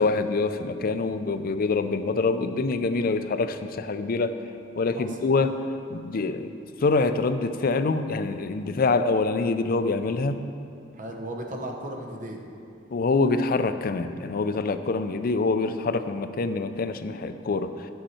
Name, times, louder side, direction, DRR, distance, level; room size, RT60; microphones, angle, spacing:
voice 1, 0.0-4.3 4.8-5.6 5.9-6.5 6.8-10.4 12.9-17.9, left 3 dB, 50° left, 9 dB, 0.5 m, -25 dB
voice 2, 10.9-12.4, right 1 dB, 45° right, 2 dB, 1.0 m, -36 dB
9.8 x 7.9 x 4.3 m, 2.5 s
head